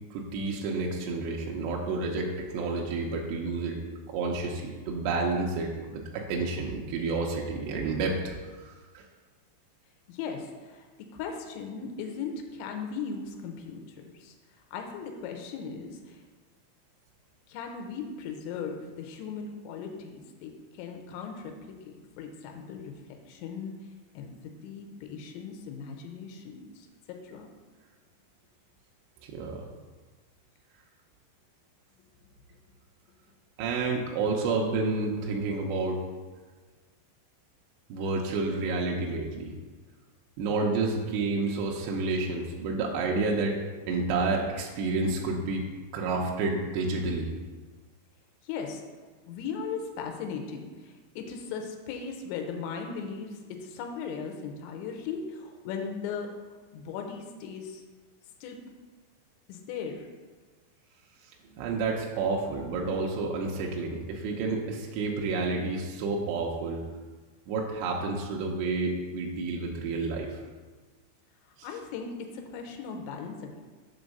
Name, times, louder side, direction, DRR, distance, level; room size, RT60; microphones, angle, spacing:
voice 1, 0.1-3.8 4.1-8.3 8.6-9.0 29.2-29.6 33.6-36.0 37.9-39.5 40.4-43.6 43.9-45.6 45.9-47.3 61.6-66.8 67.5-70.4 71.6-71.7, right 3 dB, 80° right, -1 dB, 2.7 m, -30 dB
voice 2, 10.1-14.3 14.7-16.2 17.5-22.9 23.3-23.7 24.1-27.5 48.4-48.8 49.2-56.4 56.7-57.8 58.4-58.6 59.5-60.1 71.6-73.6, left 5 dB, 80° left, 3 dB, 3.1 m, -38 dB
7.0 x 3.9 x 6.6 m, 1.3 s
omnidirectional pair, 5.4 m